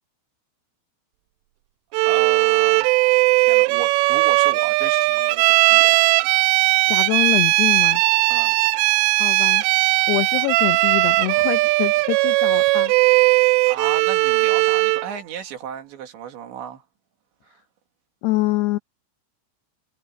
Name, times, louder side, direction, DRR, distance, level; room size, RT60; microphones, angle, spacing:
Bowed string instrument, 1.9-15.1, right 22 dB, 85° right, 3.1 m, -18 dB
voice 1, 2.1-6.1 8.3-8.6 13.7-16.8 17.4-17.6, right 8 dB, 70° right, 4.4 m, -34 dB
voice 2, 6.9-8.0 9.1-9.6 9.9-12.9 18.2-18.8, left 18 dB, 85° left, 2.3 m, -25 dB
omnidirectional pair, 5.6 m